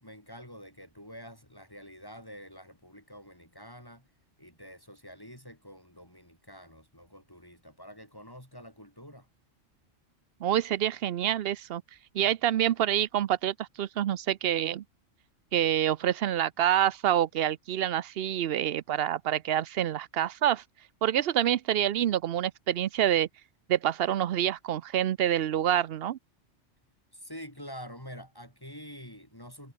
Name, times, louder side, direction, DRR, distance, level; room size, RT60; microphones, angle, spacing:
voice 1, 0.0-4.0 4.4-9.3 27.1-29.7, equal, 15° left, 4.5 m, -47 dB
voice 2, 10.4-11.8 12.1-14.8 15.5-20.6 21.0-23.3 23.7-26.2, right 11 dB, 60° right, 0.7 m, -27 dB
omnidirectional pair, 1.3 m